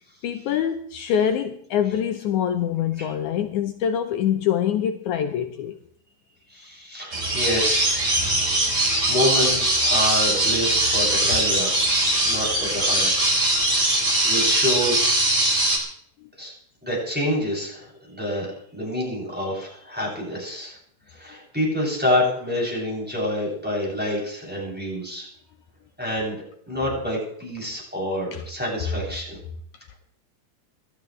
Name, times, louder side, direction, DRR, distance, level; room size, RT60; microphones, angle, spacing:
voice 1, 0.2-5.8 28.3-28.4, left 9 dB, 75° left, 6 dB, 2.2 m, -24 dB
voice 2, 6.5-8.1 8.6-13.1 13.5-15.1 16.4-16.5 16.8-18.5 18.7-20.8 21.1-25.3 26.0-26.4 26.7-29.4, left 1 dB, 5° right, -4 dB, 7.7 m, -27 dB
sound 1, 7.1-15.8, right 1 dB, 20° right, 4.0 m, -21 dB
28.0 x 12.5 x 3.3 m, 0.64 s
omnidirectional pair, 3.6 m